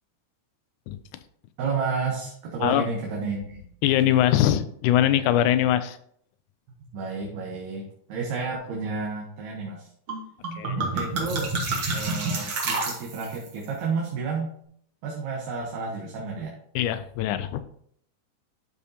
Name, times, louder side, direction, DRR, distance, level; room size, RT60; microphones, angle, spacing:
voice 1, 1.6-3.6 6.8-9.9 10.8-11.6 11.9-14.5 15.0-16.5, right 4 dB, 70° right, -2 dB, 2.4 m, -31 dB
voice 2, 3.8-6.0 10.6-10.8 16.8-17.6, left 12 dB, 90° left, 12 dB, 2.1 m, -22 dB
sound 1, 10.1-10.2 10.4-13.5, right 3 dB, 50° right, 2.1 m, -28 dB
12.5 x 4.9 x 2.8 m, 0.66 s
omnidirectional pair, 3.4 m